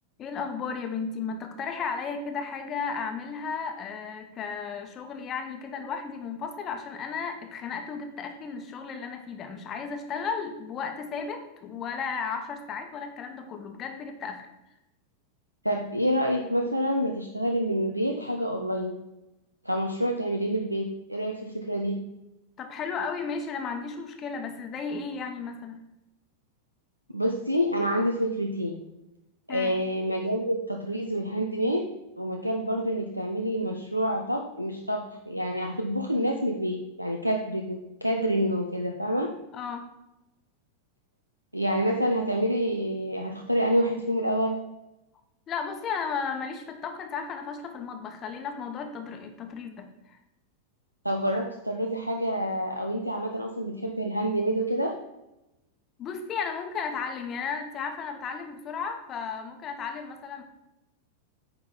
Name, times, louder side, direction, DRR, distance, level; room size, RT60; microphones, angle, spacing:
voice 1, 0.2-14.4 22.6-25.8 29.5-29.7 39.5-39.9 45.5-50.2 56.0-60.4, left 5 dB, 30° left, 5 dB, 1.0 m, -34 dB
voice 2, 15.6-19.0 19.6-22.0 27.1-28.8 29.5-31.9 32.2-39.3 41.5-44.6 51.0-54.9, equal, 90° right, 3 dB, 0.6 m, -27 dB
9.5 x 3.7 x 5.8 m, 0.94 s
figure-of-eight pair, 90°, 0 cm